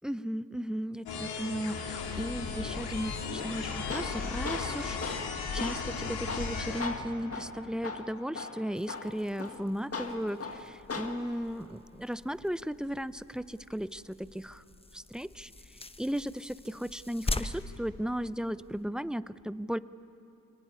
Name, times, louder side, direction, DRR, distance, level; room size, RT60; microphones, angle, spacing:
voice 1, 0.0-14.6 14.9-15.5 16.0-19.8, equal, ahead, 16 dB, 0.6 m, -36 dB
sound 1, 1.1-6.8, left 5 dB, 90° left, 2.1 m, -36 dB
Tools, 3.4-11.4, left 4 dB, 40° left, 1.8 m, -40 dB
sound 2, 8.7-18.8, left 2 dB, 15° left, 1.0 m, -43 dB
24.5 x 18.5 x 9.7 m, 2.8 s
supercardioid pair, 60°, 37 cm